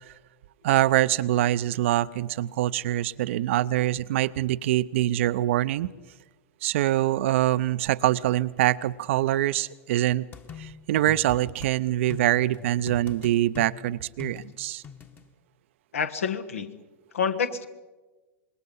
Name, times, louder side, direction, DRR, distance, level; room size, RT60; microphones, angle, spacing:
voice 1, 0.6-5.9 6.6-10.3 10.6-14.8, right 14 dB, 65° right, 16 dB, 0.6 m, -24 dB
sound 1, 10.3-11.7 12.1-15.2, left 7 dB, 25° left, 1.3 m, -42 dB
voice 2, 15.9-16.8 17.1-17.7, left 6 dB, 75° left, 8 dB, 1.4 m, -28 dB
26.0 x 21.5 x 5.5 m, 1.2 s
hypercardioid pair, 90°, 7 cm